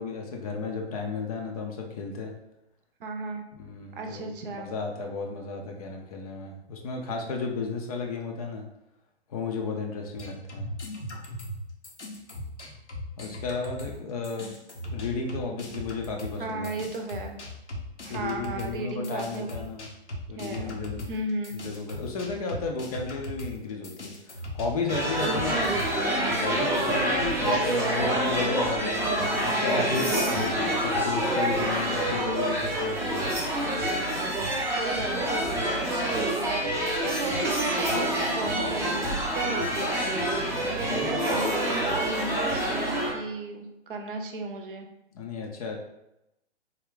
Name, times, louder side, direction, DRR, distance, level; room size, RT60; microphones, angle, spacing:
voice 1, 0.0-2.4 3.5-8.6 9.3-10.7 13.2-14.5 14.9-16.7 18.1-19.9 20.3-21.1 21.5-25.7 26.4-29.0 29.4-33.3 40.5-41.2 45.1-45.8, left 4 dB, 35° left, 1 dB, 0.5 m, -33 dB
voice 2, 3.0-3.4 3.9-4.7 16.4-17.4 18.0-19.5 20.4-20.8 21.1-21.6 25.2-26.4 27.4-28.3 29.7-30.6 34.6-40.4 40.7-44.9, right 3 dB, 50° right, 4 dB, 0.6 m, -34 dB
sound 1, 10.2-14.0 14.2-26.0, left 1 dB, 85° left, 0.9 m, -39 dB
sound 2, 24.9-43.1, right 1 dB, 10° right, 0.6 m, -27 dB
3.4 x 2.2 x 3.7 m, 0.87 s
figure-of-eight pair, 120°, 34 cm